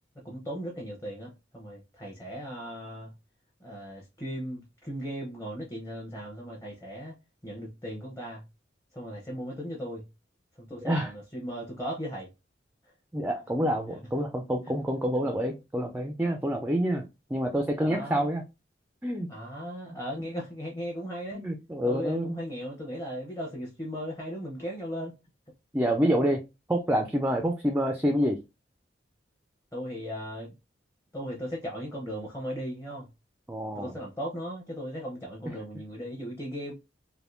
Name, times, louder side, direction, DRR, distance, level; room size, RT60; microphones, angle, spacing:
voice 1, 0.2-3.1 3.6-7.1 7.4-8.4 8.9-10.1 10.6-12.3 17.8-18.3 19.3-21.4 21.9-25.2 29.7-30.5 31.1-33.1 33.7-36.7, equal, 15° left, 0.8 m, -37 dB
voice 2, 10.8-11.1 13.1-17.0 17.3-18.4 19.0-19.3 21.3-22.4 25.7-26.4 26.7-28.4 33.5-33.9, equal, 10° right, 0.4 m, -27 dB
3.4 x 2.6 x 2.6 m
head